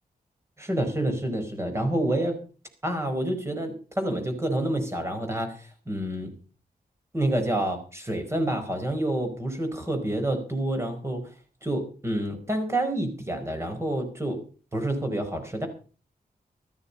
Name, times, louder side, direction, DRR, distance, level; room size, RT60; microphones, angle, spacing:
voice 1, 0.6-2.4 2.8-6.3 7.1-11.2 11.6-14.4 14.7-15.7, right 1 dB, 15° right, 5 dB, 4.8 m, -28 dB
14.5 x 13.5 x 5.4 m, 0.38 s
wide cardioid pair, 170°, 15 cm